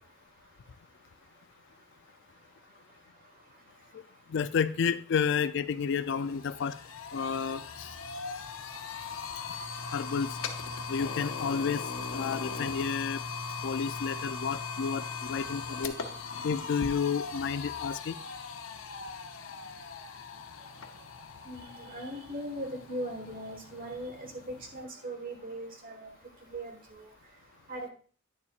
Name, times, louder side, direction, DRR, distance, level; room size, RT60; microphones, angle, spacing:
voice 1, 4.3-6.8 7.1-7.9 9.9-10.4 10.9-11.9 12.1-13.2 13.6-16.0 16.4-18.2, left 6 dB, 60° left, 14 dB, 0.4 m, -31 dB
sound 1, 5.4-5.5 5.8-24.8, left 5 dB, 80° left, 0.7 m, -39 dB
voice 2, 21.4-24.3 24.7-26.1 26.4-27.0 27.7-27.9, right 1 dB, 45° right, 4 dB, 1.5 m, -39 dB
9.7 x 7.0 x 2.4 m, 0.42 s
head